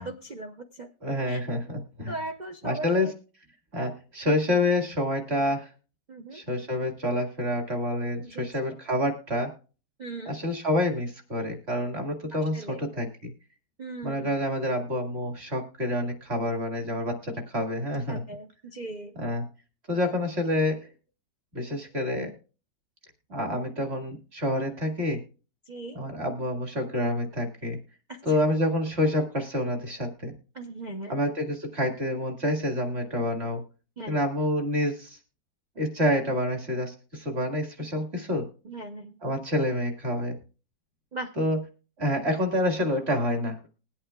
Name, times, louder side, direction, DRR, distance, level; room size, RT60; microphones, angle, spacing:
voice 1, 0.0-0.9 1.3-1.4 2.1-3.1 6.1-6.4 8.2-8.5 10.0-10.4 12.5-12.8 13.8-14.3 18.1-19.1 25.7-26.0 28.1-28.2 30.5-31.2 34.0-34.2 38.6-39.2 41.1-41.3, right 2 dB, 65° right, 3 dB, 0.4 m, -38 dB
voice 2, 1.0-2.2 2.6-3.1 3.7-5.7 6.3-9.5 10.2-13.3 14.0-18.2 19.2-19.4 19.9-20.9 21.5-22.3 23.3-25.2 25.9-27.8 28.2-30.3 31.1-33.6 34.1-35.2 35.8-38.4 39.2-40.4 41.4-41.6 42.0-43.6, left 1 dB, 35° right, 4 dB, 2.1 m, -28 dB
21.0 x 8.6 x 2.2 m, 0.36 s
omnidirectional pair, 1.9 m